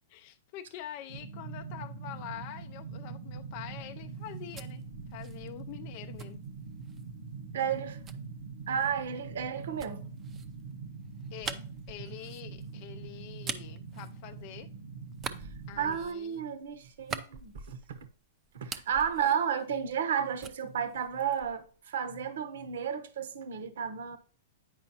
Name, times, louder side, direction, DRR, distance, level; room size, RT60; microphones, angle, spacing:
voice 1, 0.1-4.8 5.1-6.4 11.3-14.7 15.7-16.4 19.2-19.3, left 12 dB, 45° left, 0.4 m, -45 dB
sound 1, 1.1-16.0, right 5 dB, 90° right, 1.1 m, -43 dB
sound 2, 4.1-7.2 8.1-14.7 15.1-18.2 18.5-20.1 20.4-21.7, right 6 dB, 20° right, 0.5 m, -45 dB
voice 2, 7.5-8.0 8.7-10.0 15.4-15.5 15.8-18.0 18.5-24.2, right 8 dB, 75° right, 0.9 m, -32 dB
8.9 x 5.1 x 2.8 m
hypercardioid pair, 145°, 0 cm